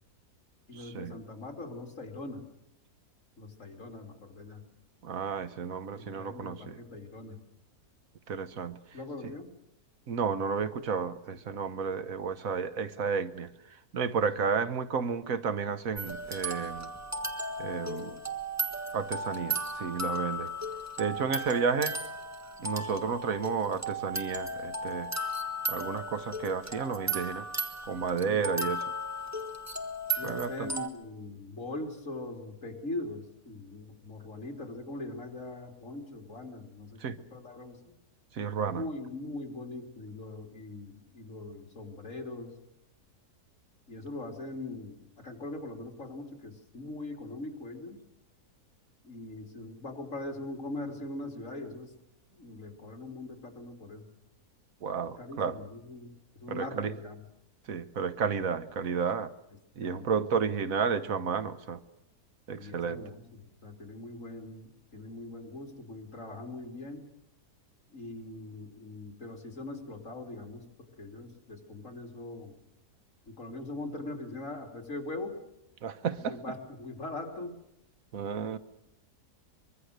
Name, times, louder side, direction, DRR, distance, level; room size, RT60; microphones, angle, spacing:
voice 1, 0.7-2.5 3.4-4.6 6.0-7.4 8.9-9.5 28.3-28.7 30.2-37.8 38.7-42.5 43.9-48.0 49.0-51.9 52.3-54.1 55.2-57.2 59.9-60.2 62.6-67.1 67.9-70.7 71.0-72.6 73.3-75.4 76.2-77.6, left 2 dB, 50° left, 3 dB, 3.5 m, -41 dB
voice 2, 5.0-6.7 8.3-8.8 10.1-13.5 13.9-16.9 17.6-18.2 18.9-20.5 21.0-22.0 22.6-25.1 25.7-27.5 27.9-28.8 30.2-30.7 37.0-37.2 38.4-38.8 54.8-55.6 56.5-56.9 57.7-59.3 59.8-61.8 62.5-63.0 75.8-76.4 78.1-78.6, right 6 dB, 60° right, 11 dB, 1.5 m, -32 dB
sound 1, 16.0-30.9, right 1 dB, 10° right, 1.4 m, -35 dB
24.0 x 22.5 x 6.6 m, 0.83 s
omnidirectional pair, 1.7 m